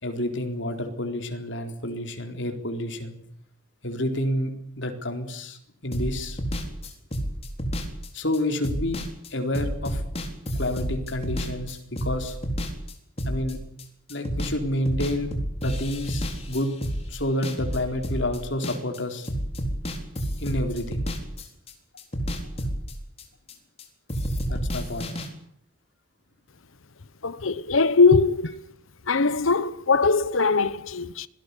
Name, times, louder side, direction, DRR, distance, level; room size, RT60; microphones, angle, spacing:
voice 1, 0.0-3.1 3.8-6.4 8.1-9.0 9.3-10.0 10.5-12.4 13.3-13.6 14.1-15.3 15.6-16.7 17.1-19.3 20.4-21.1 24.5-25.1, left 1 dB, 60° left, 4.1 m, -29 dB
sound 1, 5.9-14.6 14.9-19.0 19.2-23.8 24.1-25.3, equal, 30° left, 4.0 m, -30 dB
voice 2, 27.2-28.5 29.1-31.3, left 4 dB, 75° left, 1.0 m, -21 dB
25.5 x 18.0 x 8.5 m
head